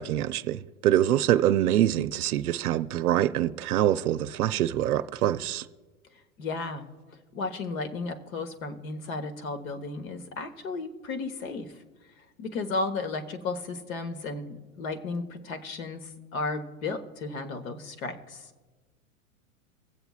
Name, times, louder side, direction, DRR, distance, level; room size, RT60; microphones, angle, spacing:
voice 1, 0.0-5.7, right 12 dB, 80° right, 0.6 m, -25 dB
voice 2, 6.4-6.8 7.3-11.7 12.4-18.5, left 3 dB, 65° left, 1.4 m, -34 dB
24.0 x 8.0 x 2.4 m
hypercardioid pair, 105°, 44 cm